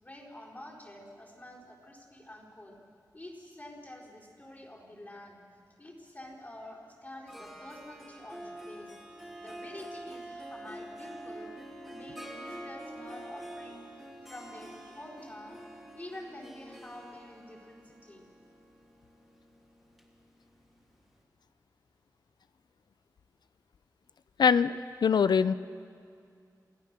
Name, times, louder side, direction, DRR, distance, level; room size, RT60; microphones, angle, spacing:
voice 1, 0.0-2.8 3.1-5.4 5.8-11.5 11.9-18.3, left 1 dB, 25° left, -4 dB, 4.3 m, -48 dB
Harp, 7.3-20.8, right 1 dB, ahead, 2.7 m, -46 dB
voice 2, 24.4-25.5, left 6 dB, 90° left, 15 dB, 0.5 m, -23 dB
28.0 x 17.0 x 6.7 m, 2.3 s
wide cardioid pair, 105°, 7 cm